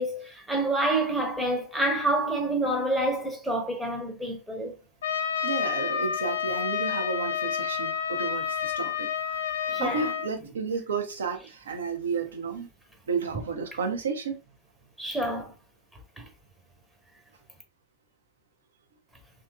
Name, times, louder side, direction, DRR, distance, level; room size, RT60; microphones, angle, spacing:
voice 1, 0.0-4.7 9.7-10.1 15.0-15.5 16.2-16.3, right 1 dB, 5° right, 0.7 m, -28 dB
Trumpet, 5.0-10.3, left 8 dB, 65° left, 0.8 m, -29 dB
voice 2, 5.4-12.7 13.1-14.4, right 5 dB, 65° right, 0.6 m, -32 dB
2.8 x 2.5 x 2.2 m
figure-of-eight pair, 90°, 0 cm